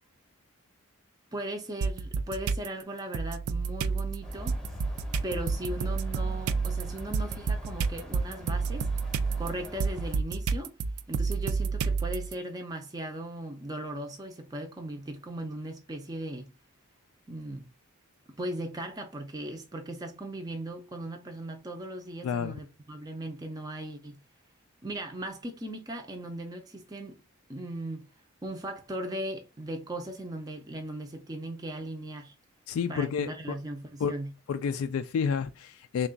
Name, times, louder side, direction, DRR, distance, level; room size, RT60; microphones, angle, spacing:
voice 1, 1.3-4.6 5.2-8.9 9.4-10.7 11.1-16.5 17.3-17.7 18.4-24.2 24.8-27.2 27.5-28.0 28.4-32.3 32.9-34.3, right 1 dB, 20° right, 0.5 m, -38 dB
sound 1, 1.8-2.7 3.1-12.3, right 4 dB, 85° right, 0.4 m, -30 dB
sound 2, 4.2-10.2, equal, ahead, 0.8 m, -43 dB
voice 2, 22.2-22.6 32.7-33.6 34.0-34.1 34.5-36.1, left 6 dB, 75° left, 0.3 m, -30 dB
3.5 x 2.3 x 3.8 m
head